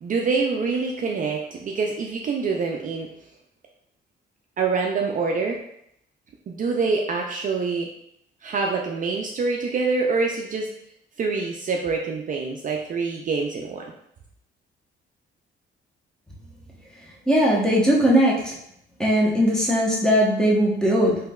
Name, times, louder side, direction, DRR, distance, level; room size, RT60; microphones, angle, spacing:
voice 1, 0.0-3.1 4.6-5.6 6.5-7.9 8.4-10.7 11.2-13.9, right 4 dB, 40° right, 0 dB, 0.4 m, -25 dB
voice 2, 17.3-18.5 19.0-21.2, equal, 5° left, -4 dB, 0.9 m, -19 dB
3.2 x 2.9 x 2.3 m, 0.75 s
cardioid pair, 90°, 20 cm